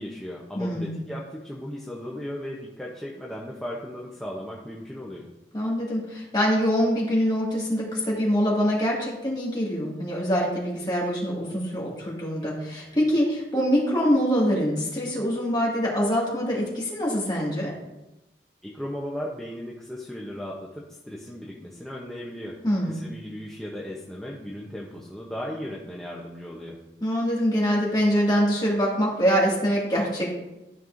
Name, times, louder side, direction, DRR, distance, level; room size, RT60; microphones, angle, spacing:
voice 1, 0.0-5.3 18.6-22.6 22.8-26.8, equal, 5° left, -4 dB, 0.7 m, -36 dB
voice 2, 0.5-1.1 5.5-17.7 22.6-23.0 27.0-30.3, equal, 25° left, -4 dB, 2.0 m, -24 dB
12.5 x 5.4 x 2.6 m, 0.97 s
head